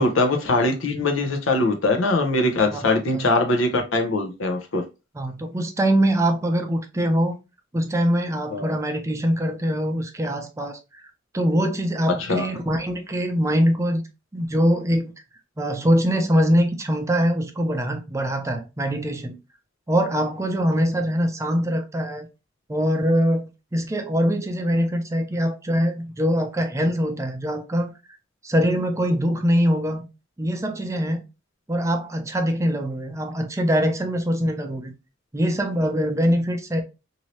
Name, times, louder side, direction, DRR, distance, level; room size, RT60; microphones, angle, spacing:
voice 1, 0.0-4.8 8.5-8.8 12.2-12.5, left 2 dB, 80° left, 0.8 m, -22 dB
voice 2, 5.2-7.4 7.7-11.1 11.3-14.0 14.3-15.1 15.6-19.4 19.9-22.3 22.7-27.9 28.4-30.1 30.4-31.2 31.7-34.9 35.3-36.8, equal, 15° right, 0.4 m, -23 dB
2.8 x 2.7 x 3.0 m
head